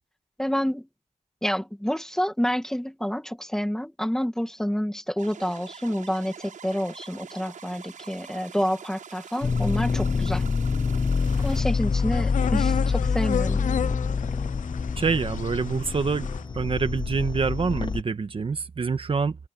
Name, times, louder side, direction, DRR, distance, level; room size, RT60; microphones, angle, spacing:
voice 1, 0.4-0.9 1.4-10.4 11.4-13.6, equal, 5° left, 2.2 m, -28 dB
sound 1, 5.2-11.6, right 7 dB, 80° right, 7.4 m, -44 dB
sound 2, 9.4-18.0, left 5 dB, 35° left, 0.7 m, -26 dB
sound 3, 11.2-16.4, left 8 dB, 75° left, 0.5 m, -34 dB
voice 2, 15.0-16.3 16.5-19.4, right 5 dB, 45° right, 1.5 m, -26 dB
open air
wide cardioid pair, 125°, 13 cm